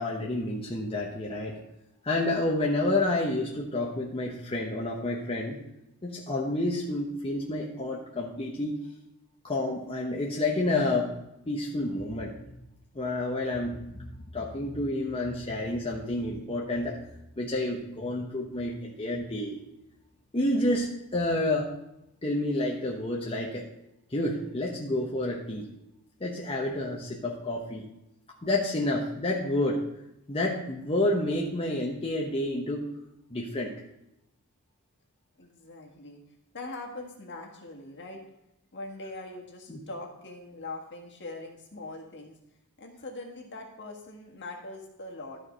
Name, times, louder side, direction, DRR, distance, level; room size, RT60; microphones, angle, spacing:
voice 1, 0.0-1.6 2.0-5.6 6.0-8.7 9.4-11.1 11.5-12.6 12.9-17.0 17.4-19.6 20.3-21.7 22.2-23.7 24.1-25.7 26.2-27.8 28.4-29.8 30.3-32.8 33.3-33.7 39.7-39.8, left 1 dB, 25° left, -3 dB, 1.0 m, -29 dB
voice 2, 35.4-36.2 36.5-38.2 38.7-42.4 42.8-45.4, left 2 dB, 55° left, 0 dB, 1.7 m, -42 dB
12.5 x 4.8 x 4.8 m, 0.86 s
head